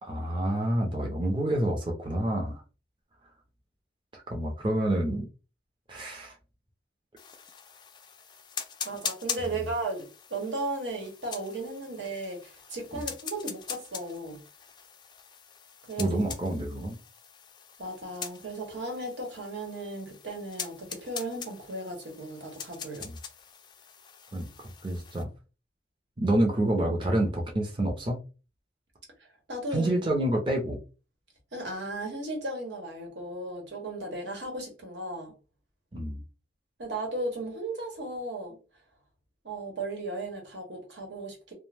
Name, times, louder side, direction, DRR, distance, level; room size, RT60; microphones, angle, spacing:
voice 1, 0.0-2.6 4.1-5.3 5.9-6.4 9.5-9.6 16.0-16.9 23.0-23.1 24.3-24.5 24.8-25.3 26.2-28.2 29.7-30.8 35.9-36.2, right 1 dB, 25° right, 0.5 m, -28 dB
sound 1, 7.2-25.2, left 7 dB, 25° left, 0.3 m, -42 dB
voice 2, 8.8-14.4 15.9-16.1 17.8-23.1 29.2-29.9 31.5-35.3 36.8-38.6 39.4-41.5, right 2 dB, 85° right, 1.0 m, -36 dB
2.5 x 2.1 x 3.2 m
head